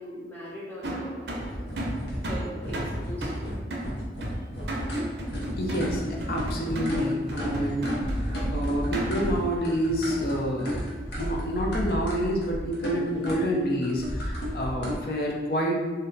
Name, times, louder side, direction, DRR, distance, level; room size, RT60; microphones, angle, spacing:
voice 1, 0.0-1.6 2.3-3.5, equal, 10° left, -6 dB, 0.6 m, -40 dB
sound 1, 0.8-9.4, right 1 dB, 75° right, 0.5 m, -35 dB
sound 2, 1.3-15.0, equal, 85° left, 0.8 m, -32 dB
voice 2, 5.6-10.8 11.2-15.8, equal, 55° left, -1 dB, 0.5 m, -28 dB
2.6 x 2.1 x 3.8 m, 1.3 s
head